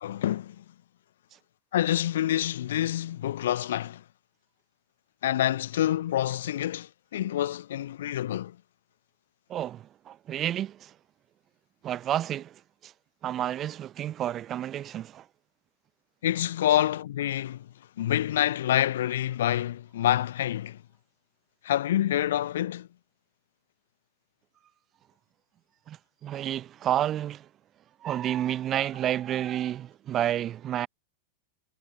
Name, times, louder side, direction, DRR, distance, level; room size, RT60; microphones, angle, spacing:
voice 1, 0.0-0.6 1.7-4.0 5.2-8.5 16.2-17.7 18.0-20.8 21.6-22.9, left 12 dB, 60° left, 0.8 m, -27 dB
voice 2, 9.5-10.8 11.8-12.5 13.2-15.2 25.9-26.0 26.2-27.4 28.0-30.9, right 11 dB, 30° right, 0.9 m, -30 dB
figure-of-eight pair, 90°, 0 cm